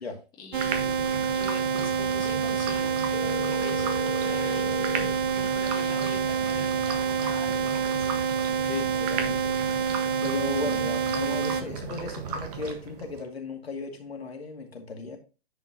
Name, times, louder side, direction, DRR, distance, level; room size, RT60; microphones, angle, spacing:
voice 1, 0.4-8.6, left 5 dB, 15° left, 1.6 m, -44 dB
sound 1, 0.5-13.2, right 6 dB, 40° right, 1.5 m, -36 dB
sound 2, 0.5-11.6, right 6 dB, 55° right, 1.0 m, -27 dB
Telephone, 3.1-5.1, left 8 dB, 55° left, 0.9 m, -36 dB
voice 2, 8.6-15.2, left 3 dB, 75° left, 2.3 m, -36 dB
10.0 x 5.1 x 2.9 m
figure-of-eight pair, 130°, 31 cm